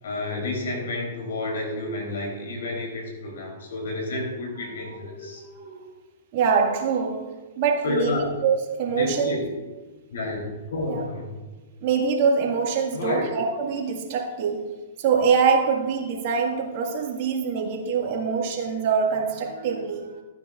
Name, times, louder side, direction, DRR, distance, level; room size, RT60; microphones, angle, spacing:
voice 1, 0.0-5.4 7.8-8.4 8.9-9.5 10.1-11.4 12.9-13.4, left 2 dB, 75° left, 0 dB, 3.7 m, -30 dB
voice 2, 4.8-5.3 5.6-5.8 6.3-9.3 10.9-11.0 11.8-14.7 15.0-20.1, right 6 dB, 50° right, 1 dB, 2.0 m, -24 dB
14.5 x 9.4 x 2.5 m, 1.2 s
hypercardioid pair, 125°, 0 cm